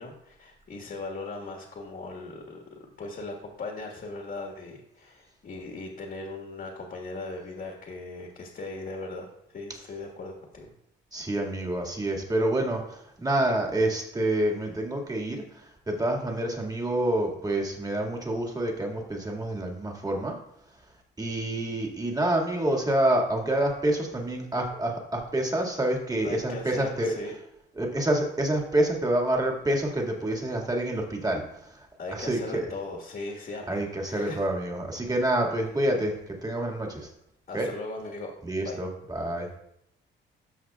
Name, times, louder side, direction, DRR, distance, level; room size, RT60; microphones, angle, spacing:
voice 1, 0.0-10.7 26.2-27.4 32.0-34.5 35.0-35.1 37.5-38.3 38.6-38.8, left 2 dB, 50° left, 1 dB, 1.6 m, -38 dB
voice 2, 11.1-15.4 15.9-20.3 21.2-27.1 27.8-31.7 32.1-32.7 33.7-37.1 37.5-37.7 38.4-39.5, right 1 dB, 20° right, 1 dB, 2.0 m, -27 dB
13.0 x 5.6 x 2.4 m, 0.77 s
cardioid pair, 90°, 20 cm